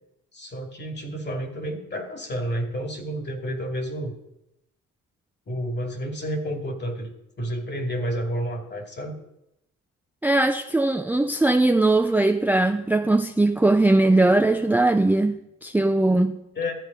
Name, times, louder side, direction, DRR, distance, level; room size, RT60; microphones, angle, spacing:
voice 1, 0.3-4.1 5.5-9.2 16.6-16.7, equal, 35° left, 2.5 m, -30 dB
voice 2, 10.2-16.4, right 2 dB, 5° right, 0.5 m, -20 dB
13.0 x 8.3 x 5.3 m
cardioid pair, 90°, 30 cm